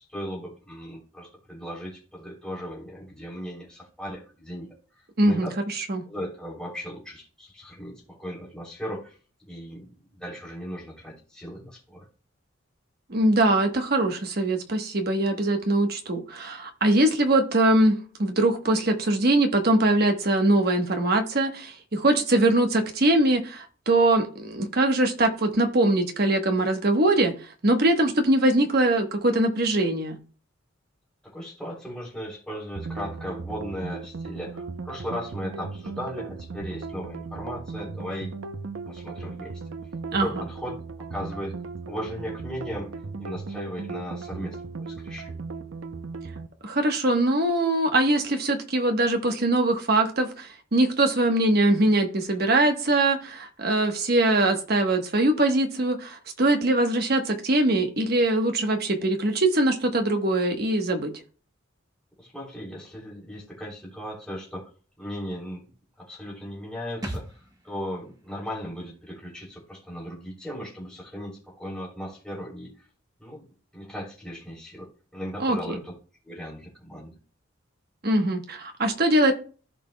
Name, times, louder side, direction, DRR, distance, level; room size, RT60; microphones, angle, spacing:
voice 1, 0.1-4.7 4.9-5.6 6.0-12.1 31.3-38.3 38.9-39.6 40.1-40.8 41.1-41.5 41.9-42.9 43.2-45.4 62.2-64.7 65.0-65.6 66.0-67.4 67.6-72.9 73.2-73.4 73.7-75.9 76.2-77.2, equal, 5° left, -4 dB, 3.2 m, -37 dB
voice 2, 5.2-5.5 5.9-6.0 13.1-17.9 18.2-27.3 27.6-30.2 40.1-40.4 46.6-61.1 75.4-75.8 78.0-79.3, right 1 dB, 50° right, 5 dB, 1.1 m, -22 dB
sound 1, 32.8-46.5, right 4 dB, 80° right, 0.6 m, -37 dB
sound 2, 67.0-70.5 70.8-70.9, right 1 dB, 20° right, 1.0 m, -42 dB
15.5 x 5.1 x 2.2 m, 0.39 s
head